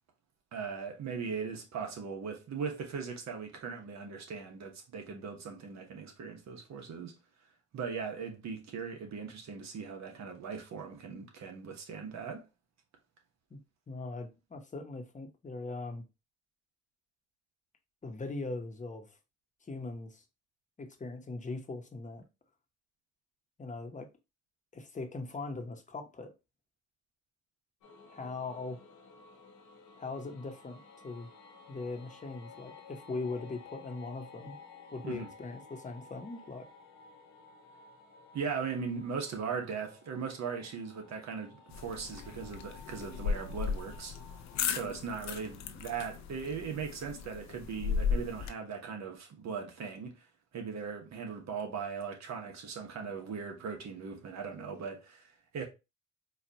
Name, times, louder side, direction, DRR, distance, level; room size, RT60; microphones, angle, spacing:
voice 1, 0.5-7.1 7.7-12.4 35.0-35.3 38.3-44.1 44.7-50.2 50.5-55.6, right 6 dB, 65° right, 1.2 m, -39 dB
voice 2, 13.9-16.0 18.0-19.1 19.7-20.2 20.8-22.3 23.6-24.1 24.7-26.3 28.1-28.8 30.0-31.3 31.7-34.6 34.9-36.7, left 3 dB, 25° left, 0.9 m, -40 dB
sound 1, 27.8-44.7, left 5 dB, 90° left, 1.1 m, -54 dB
sound 2, 41.7-48.5, left 6 dB, 65° left, 0.6 m, -36 dB
4.5 x 2.4 x 2.8 m
cardioid pair, 90°, 30 cm